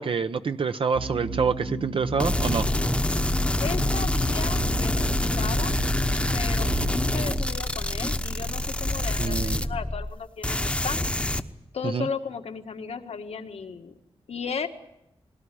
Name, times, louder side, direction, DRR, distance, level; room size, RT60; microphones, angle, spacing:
voice 1, 0.0-2.6 9.2-9.6 11.9-12.0, right 5 dB, 60° right, 9 dB, 0.8 m, -26 dB
sound 1, 0.9-7.3, right 2 dB, 75° right, 7.5 m, -34 dB
sound 2, 2.2-10.2 10.4-11.4, left 1 dB, 10° left, 1.0 m, -26 dB
voice 2, 3.6-5.8 6.3-11.0 11.7-13.9 14.3-14.7, left 6 dB, 80° left, 6 dB, 1.8 m, -35 dB
20.5 x 18.0 x 10.0 m, 0.87 s
wide cardioid pair, 120°, 10 cm